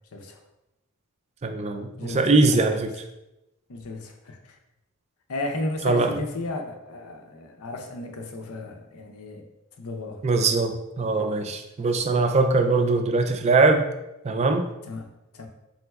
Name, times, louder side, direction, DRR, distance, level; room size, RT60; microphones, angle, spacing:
voice 1, 1.4-2.9 5.8-6.1 10.2-13.8 14.2-14.7, right 3 dB, 30° right, 6 dB, 0.3 m, -21 dB
voice 2, 2.0-2.9 3.7-4.6 5.3-9.4 9.8-10.2 14.9-15.5, left 2 dB, 90° left, 4 dB, 0.6 m, -34 dB
4.2 x 3.8 x 2.3 m, 0.92 s
head